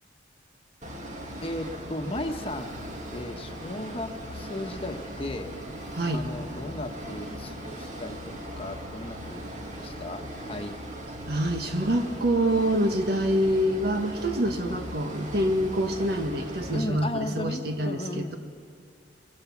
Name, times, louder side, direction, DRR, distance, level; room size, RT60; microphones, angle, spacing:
sound 1, 0.8-16.8, equal, 40° right, 2.2 m, -39 dB
voice 1, 1.4-2.8 3.1-5.5 6.1-10.8 16.7-18.4, left 1 dB, 30° left, 5 dB, 1.3 m, -36 dB
voice 2, 5.9-6.2 11.3-18.4, right 1 dB, 60° right, 5 dB, 1.7 m, -26 dB
23.0 x 23.0 x 7.2 m, 2.2 s
head